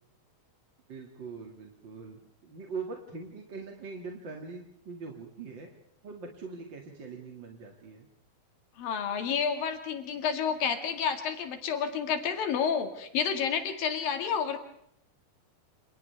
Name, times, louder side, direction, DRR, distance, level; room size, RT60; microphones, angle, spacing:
voice 1, 0.9-5.7 6.0-8.1, right 4 dB, 35° right, 1 dB, 2.1 m, -42 dB
voice 2, 8.8-14.6, left 7 dB, 60° left, 6 dB, 3.6 m, -30 dB
28.5 x 28.5 x 3.5 m, 0.72 s
omnidirectional pair, 4.8 m